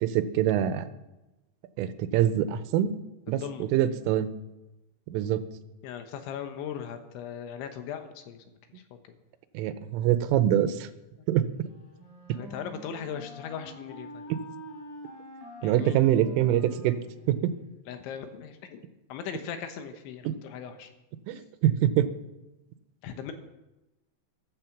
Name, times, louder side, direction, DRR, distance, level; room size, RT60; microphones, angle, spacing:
voice 1, 0.0-0.9 1.8-2.9 3.3-4.3 5.1-5.4 9.5-10.9 11.3-11.5 12.3-12.4 15.6-17.0 17.3-17.5 20.2-20.3 21.3-22.1, right 11 dB, 85° right, 11 dB, 3.4 m, -24 dB
voice 2, 3.3-3.7 5.8-8.4 8.7-9.1 11.2-11.3 12.3-14.3 15.6-16.0 17.9-20.9 23.0-23.3, left 8 dB, 75° left, 7 dB, 3.4 m, -39 dB
Wind instrument woodwind instrument, 11.6-17.7, equal, 45° left, 5.0 m, -46 dB
15.0 x 13.0 x 6.0 m, 1.0 s
omnidirectional pair, 5.7 m